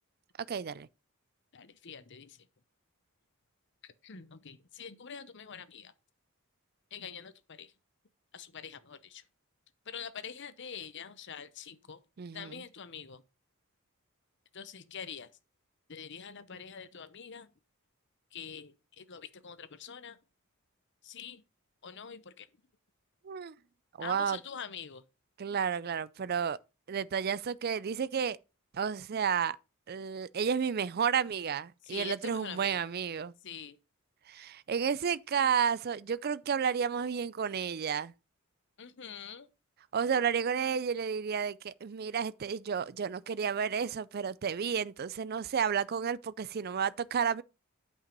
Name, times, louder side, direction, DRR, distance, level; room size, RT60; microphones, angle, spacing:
voice 1, 0.5-0.9 12.2-12.5 23.2-23.5 24.0-24.4 25.4-26.6 26.9-28.4 28.7-29.6 29.9-33.3 34.3-38.1 39.9-47.4, right 7 dB, 45° right, 0.4 m, -31 dB
voice 2, 1.5-2.5 3.8-5.9 6.9-7.7 8.3-9.3 9.8-12.0 12.3-13.2 14.5-15.3 15.9-17.5 18.3-20.2 21.0-21.4 21.8-22.5 24.0-25.0 31.8-32.8 33.4-33.8 38.8-39.5, left 7 dB, 55° left, 0.8 m, -45 dB
9.0 x 5.5 x 5.3 m
head